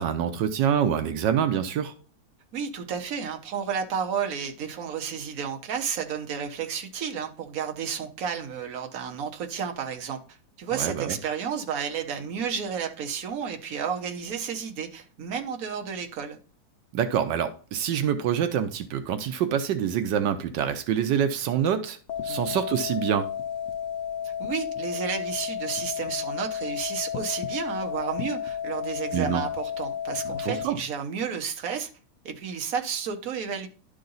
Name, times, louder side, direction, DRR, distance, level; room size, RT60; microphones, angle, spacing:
voice 1, 0.0-1.9 10.7-11.2 16.9-22.0 22.2-23.3 29.1-29.4 30.2-30.8, right 9 dB, 85° right, 1.4 m, -26 dB
voice 2, 2.5-10.2 10.6-16.4 22.3-22.5 24.2-31.9 32.2-33.7, right 7 dB, 55° right, 1.4 m, -32 dB
sound 1, 22.1-30.7, left 8 dB, 80° left, 1.3 m, -32 dB
11.5 x 3.8 x 3.9 m
omnidirectional pair, 1.9 m